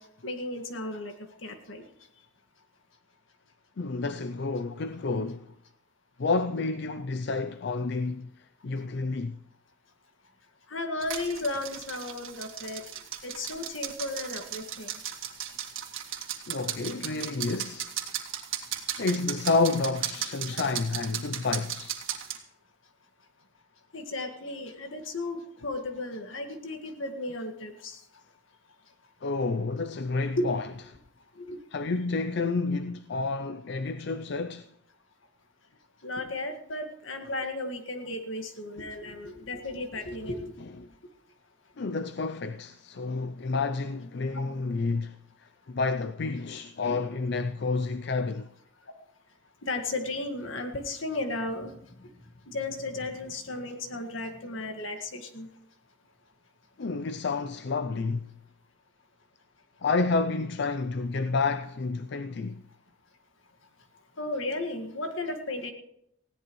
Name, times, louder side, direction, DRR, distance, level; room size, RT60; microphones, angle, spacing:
voice 1, 0.2-1.1 1.4-1.9 10.7-12.8 13.2-15.0 23.9-28.0 30.4-30.5 31.4-31.6 36.0-40.5 44.3-44.4 49.6-52.1 52.5-55.5 64.2-65.7, left 2 dB, 75° left, 1.8 m, -34 dB
voice 2, 3.8-5.5 6.2-9.4 16.5-17.9 19.0-22.0 29.2-30.7 31.7-34.7 40.6-40.9 41.8-48.5 56.8-58.3 59.8-62.6, left 3 dB, 55° left, 0.4 m, -30 dB
sound 1, 11.0-22.4, right 10 dB, 80° right, 2.0 m, -36 dB
19.5 x 16.0 x 3.1 m
head